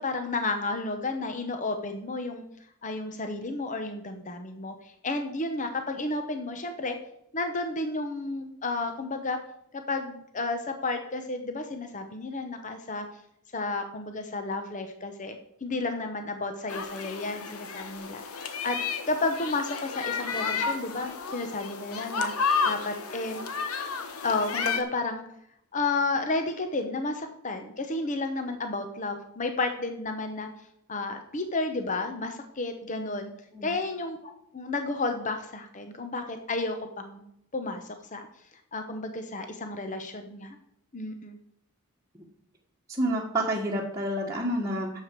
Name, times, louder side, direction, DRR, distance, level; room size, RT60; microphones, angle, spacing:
voice 1, 0.0-2.4 2.8-7.0 7.3-9.4 9.7-13.1 13.5-18.8 19.1-22.3 22.7-23.4 24.2-25.2 25.7-30.5 30.9-33.3 33.6-34.2 34.5-37.3 37.5-38.3 38.7-40.6 40.9-41.4, left 3 dB, 35° left, 6 dB, 0.9 m, -32 dB
sound 1, 16.7-24.8, left 5 dB, 75° left, 1.2 m, -32 dB
voice 2, 42.9-45.0, right 1 dB, 15° right, -4 dB, 1.5 m, -29 dB
12.0 x 7.6 x 4.6 m, 0.77 s
head